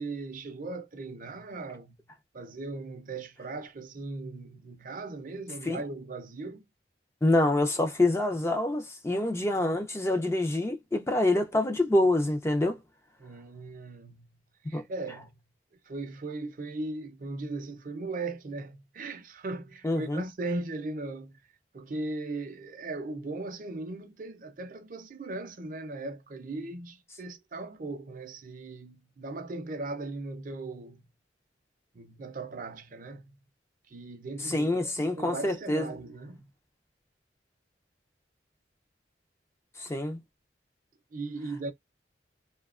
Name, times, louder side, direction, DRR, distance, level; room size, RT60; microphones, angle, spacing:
voice 1, 0.0-2.1 2.3-6.7 13.2-15.4 15.8-31.1 31.9-33.3 33.9-36.5 41.1-41.7, right 2 dB, 45° right, 0.5 m, -38 dB
voice 2, 7.2-12.8 14.7-14.8 19.8-20.2 34.4-35.8 39.8-40.2, left 2 dB, 15° left, 0.4 m, -26 dB
2.7 x 2.2 x 2.3 m
head